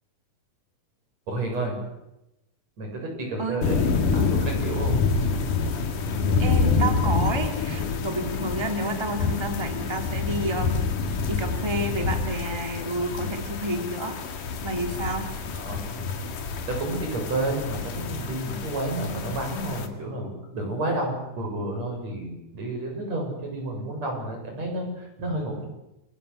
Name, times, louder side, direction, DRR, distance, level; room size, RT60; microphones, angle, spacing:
voice 1, 1.3-1.8 2.8-5.0 15.6-15.8 16.6-25.7, right 2 dB, 50° right, 1 dB, 8.6 m, -30 dB
sound 1, 3.6-19.9, left 4 dB, 70° left, 3.5 m, -27 dB
voice 2, 6.4-14.2 14.6-15.3, right 1 dB, 10° right, 4 dB, 2.2 m, -30 dB
29.5 x 21.0 x 8.3 m, 0.92 s
omnidirectional pair, 4.0 m